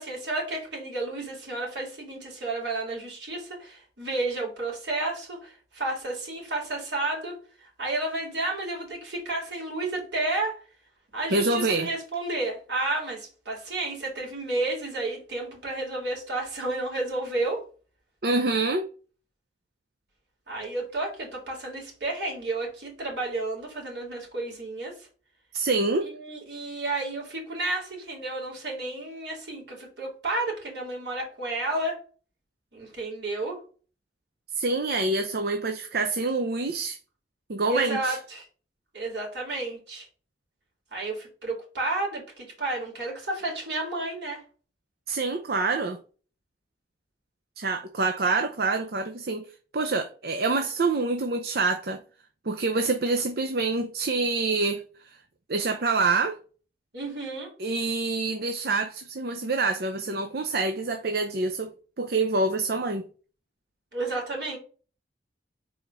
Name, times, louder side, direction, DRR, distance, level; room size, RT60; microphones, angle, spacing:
voice 1, 0.0-10.6 11.1-17.6 20.5-25.1 26.0-32.0 32.7-33.6 37.7-38.4 38.9-40.1 40.9-44.4 56.9-57.5 63.9-64.6, right 2 dB, 80° right, 3.7 m, -31 dB
voice 2, 11.3-11.9 18.2-18.9 25.5-26.1 34.6-37.0 37.5-38.2 45.1-46.0 47.6-49.5 49.7-52.0 52.5-55.2 55.5-56.4 57.6-61.7 62.0-63.0, right 3 dB, 60° right, 0.7 m, -26 dB
5.0 x 4.0 x 5.8 m
head